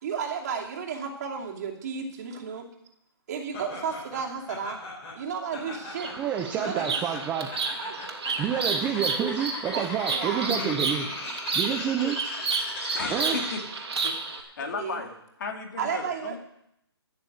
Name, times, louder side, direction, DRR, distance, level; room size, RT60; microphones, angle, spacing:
voice 1, 0.0-2.7 3.3-4.8 5.1-6.3 6.5-7.0 7.8-8.0 9.7-10.6 14.6-15.0 15.8-16.4, right 6 dB, 40° right, -1 dB, 2.6 m, -33 dB
Laughter, 3.5-13.8, left 3 dB, 25° left, 4.0 m, -39 dB
Bird vocalization bird call bird song, 5.9-14.4, right 4 dB, 75° right, 2.7 m, -31 dB
voice 2, 6.2-7.5 8.4-11.1 11.5-12.2 13.1-13.4, right 8 dB, 10° right, 4 dB, 0.5 m, -28 dB
voice 3, 10.5-11.4 12.9-13.6 13.9-15.1 15.4-16.4, left 4 dB, 45° left, 3 dB, 2.5 m, -36 dB
14.5 x 6.9 x 8.0 m, 0.77 s
hypercardioid pair, 160°, 14 cm